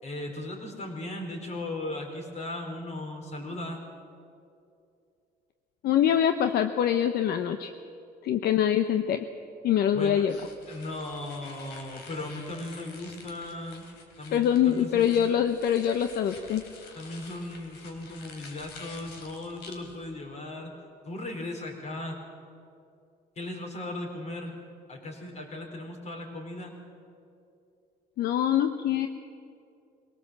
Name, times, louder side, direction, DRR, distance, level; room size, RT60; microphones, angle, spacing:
voice 1, 0.0-3.8 9.9-10.4 10.7-13.8 14.2-15.2 16.9-20.7 21.1-22.2 23.4-24.5 24.9-26.7, left 1 dB, 40° left, 3 dB, 4.3 m, -37 dB
voice 2, 5.8-7.7 8.2-9.3 9.6-10.3 14.3-16.6 28.2-29.1, left 9 dB, 70° left, 8 dB, 0.9 m, -24 dB
sound 1, 10.3-20.0, left 4 dB, 85° left, 3.2 m, -49 dB
22.0 x 18.0 x 7.6 m, 2.5 s
cardioid pair, 110°, 17 cm